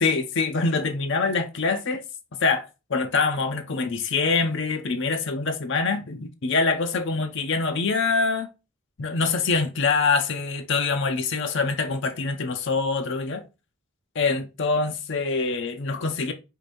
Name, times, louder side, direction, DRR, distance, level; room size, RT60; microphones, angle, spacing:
voice 1, 0.0-2.0 2.4-8.5 9.0-13.4 14.2-16.3, left 4 dB, 55° left, 0.6 m, -25 dB
4.8 x 2.6 x 4.2 m
head